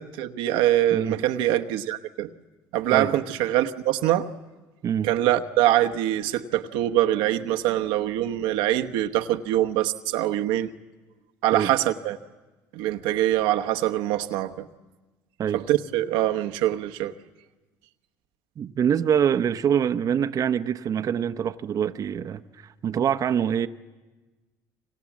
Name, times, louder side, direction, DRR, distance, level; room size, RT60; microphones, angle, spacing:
voice 1, 0.0-2.3 2.7-4.3 5.0-10.7 11.4-12.2 12.7-14.7 15.5-17.1, right 13 dB, 85° right, 1.0 m, -24 dB
voice 2, 0.9-1.2 2.9-3.1 4.8-5.1 11.5-11.7 15.4-15.6 18.6-23.7, right 8 dB, 45° right, 0.8 m, -25 dB
28.5 x 25.5 x 7.3 m
supercardioid pair, 95°, 8 cm